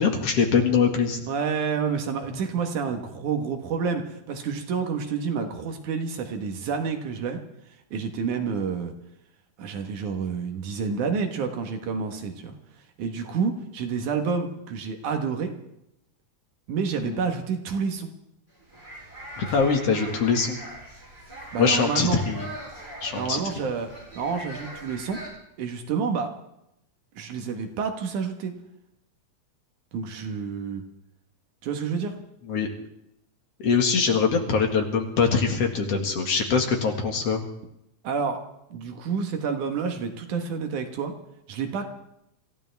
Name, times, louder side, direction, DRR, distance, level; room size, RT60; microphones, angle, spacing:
voice 1, 0.0-1.2 17.0-17.2 19.4-20.6 21.6-22.5 23.0-23.4 32.5-32.7 33.6-37.4, left 5 dB, 55° left, 3 dB, 2.6 m, -23 dB
voice 2, 1.3-7.4 7.9-8.9 9.6-12.6 13.0-15.5 16.7-18.1 21.5-22.2 23.1-25.2 25.6-26.3 27.2-28.5 29.9-30.8 31.6-32.2 38.0-38.4 38.7-41.2 41.5-41.9, right 5 dB, 75° right, 5 dB, 2.9 m, -29 dB
sound 1, 18.5-25.3, right 1 dB, 20° right, 5.2 m, -41 dB
26.0 x 15.0 x 3.5 m, 0.82 s
omnidirectional pair, 3.5 m